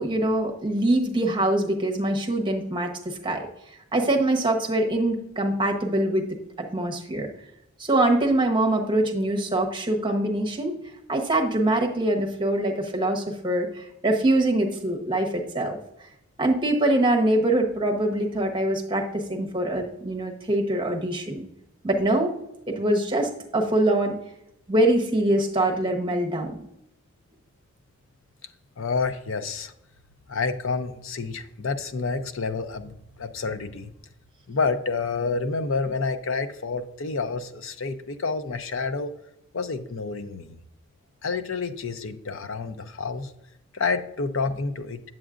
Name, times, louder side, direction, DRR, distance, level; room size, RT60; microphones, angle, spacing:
voice 1, 0.0-3.5 3.9-7.3 7.8-10.8 11.1-15.8 16.4-21.4 21.8-22.3 22.7-24.2 24.7-26.6, right 1 dB, 20° right, 1 dB, 0.9 m, -24 dB
voice 2, 28.8-29.7 30.3-33.9 34.5-39.1 39.5-40.6 41.2-43.3 43.7-45.0, left 4 dB, 65° left, 9 dB, 0.6 m, -29 dB
7.9 x 7.4 x 2.5 m, 0.83 s
head